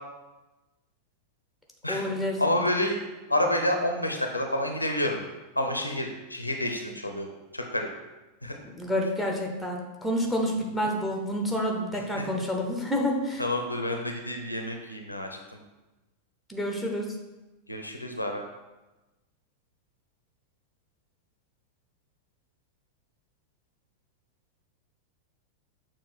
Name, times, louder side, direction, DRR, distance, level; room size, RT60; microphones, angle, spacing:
voice 1, 1.9-2.6 8.7-13.4 16.5-17.1, equal, ahead, 0 dB, 1.0 m, -29 dB
voice 2, 2.4-3.0 3.3-5.2 5.6-7.3 7.5-7.9 8.4-8.5 11.9-12.2 13.4-15.6 17.7-18.4, left 1 dB, 85° left, 3 dB, 0.7 m, -29 dB
6.7 x 2.6 x 5.5 m, 1.1 s
figure-of-eight pair, 90°, 0 cm